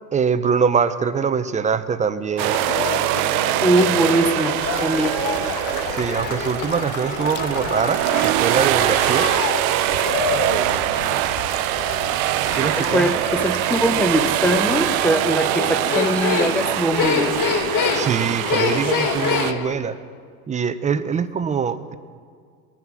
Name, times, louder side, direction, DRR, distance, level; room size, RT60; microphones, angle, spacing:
voice 1, 0.1-2.5 5.9-9.3 12.6-13.2 17.9-20.0 20.5-21.9, right 6 dB, 15° right, 12 dB, 0.6 m, -23 dB
sound 1, 2.4-19.7, left 6 dB, 45° left, 1.7 m, -28 dB
sound 2, 2.4-19.5, right 18 dB, 70° right, 0.5 m, -23 dB
voice 2, 3.6-5.2 12.6-17.4, equal, 5° left, 8 dB, 1.0 m, -21 dB
sound 3, 4.6-15.1, left 9 dB, 80° left, 1.1 m, -36 dB
20.5 x 9.5 x 6.1 m, 2.1 s
supercardioid pair, 110°, 43 cm